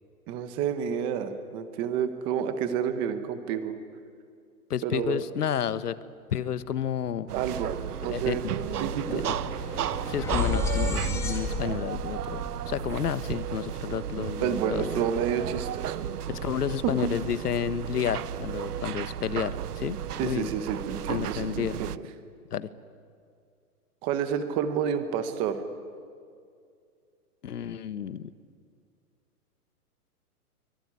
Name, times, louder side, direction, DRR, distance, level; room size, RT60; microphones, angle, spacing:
voice 1, 0.3-3.8 4.8-5.2 7.3-9.3 14.4-16.0 17.0-17.1 20.2-21.9 24.0-25.6, right 8 dB, 10° right, 10 dB, 0.8 m, -30 dB
voice 2, 4.7-6.0 6.3-7.3 8.1-8.4 9.0-9.2 10.1-15.1 16.3-20.5 21.1-21.8 22.5-22.7 27.4-28.3, left 9 dB, 80° left, 14 dB, 1.4 m, -31 dB
sound 1, 7.3-7.4 7.6-13.8, left 3 dB, 5° left, 2.0 m, -34 dB
sound 2, 7.3-22.0, right 10 dB, 80° right, 0.9 m, -34 dB
24.0 x 23.5 x 9.8 m, 2.2 s
hypercardioid pair, 165°, 46 cm